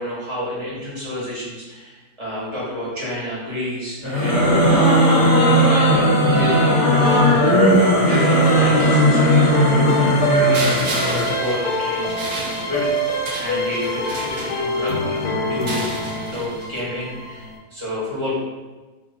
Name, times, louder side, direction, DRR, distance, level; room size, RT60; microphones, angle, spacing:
voice 1, 0.0-4.7 5.3-7.6 7.9-13.0 13.4-16.0 16.2-18.4, left 1 dB, 20° right, -8 dB, 0.9 m, -30 dB
sound 1, 4.0-11.3, equal, 55° left, 0.8 m, -16 dB
sound 2, 6.3-17.6, equal, 75° left, 1.1 m, -25 dB
sound 3, 10.5-15.0 15.5-16.8, right 2 dB, 80° right, 1.3 m, -32 dB
2.9 x 2.4 x 3.9 m, 1.3 s
omnidirectional pair, 1.9 m